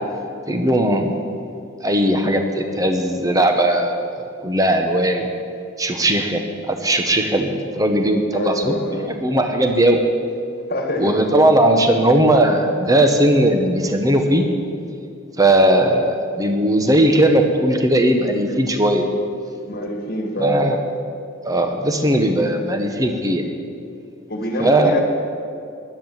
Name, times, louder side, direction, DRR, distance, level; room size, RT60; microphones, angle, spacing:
voice 1, 0.5-1.2 1.8-4.1 4.4-5.2 5.8-6.4 6.7-8.8 9.0-10.0 11.0-14.5 15.4-19.1 20.4-20.8 21.5-23.4 24.6-25.0, right 1 dB, 15° right, 4 dB, 1.1 m, -18 dB
voice 2, 8.3-9.1 10.7-11.5 19.7-20.8 24.3-25.0, left 1 dB, 50° left, 3 dB, 1.9 m, -26 dB
16.0 x 11.0 x 7.3 m, 2.5 s
head